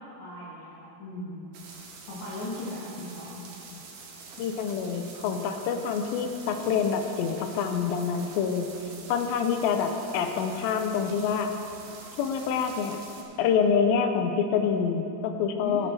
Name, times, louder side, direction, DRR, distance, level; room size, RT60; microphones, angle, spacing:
voice 1, 0.0-1.5 2.1-3.4 15.6-15.9, left 1 dB, 55° left, -9 dB, 2.8 m, -38 dB
sound 1, 1.5-13.2, right 4 dB, 70° right, 2.8 m, -46 dB
voice 2, 4.4-8.7 9.1-11.5 12.2-13.0 13.4-15.9, left 6 dB, 80° left, 6 dB, 2.4 m, -26 dB
19.0 x 8.7 x 3.3 m, 2.9 s
omnidirectional pair, 4.3 m